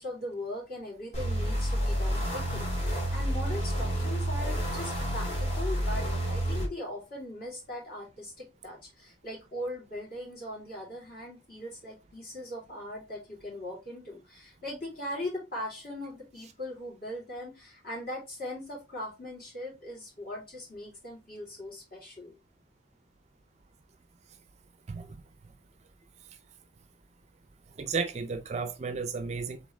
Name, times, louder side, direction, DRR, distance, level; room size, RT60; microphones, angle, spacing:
voice 1, 0.0-22.3, left 1 dB, 50° left, 2.6 m, -40 dB
sound 1, 1.1-6.7, equal, 35° left, 1.9 m, -29 dB
voice 2, 24.9-25.2 27.8-29.6, right 5 dB, 35° right, 0.4 m, -33 dB
3.9 x 3.7 x 3.1 m
head